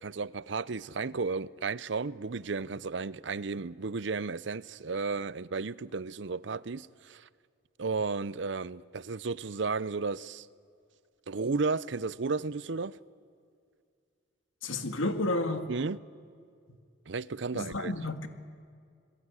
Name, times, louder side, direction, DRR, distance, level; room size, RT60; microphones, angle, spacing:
voice 1, 0.0-7.3 7.8-10.5 11.3-12.9 15.7-16.0 17.1-17.9, right 4 dB, 65° right, 0.6 m, -33 dB
voice 2, 14.6-15.6 17.5-18.3, left 2 dB, 90° left, 2.2 m, -31 dB
28.5 x 21.0 x 9.8 m
head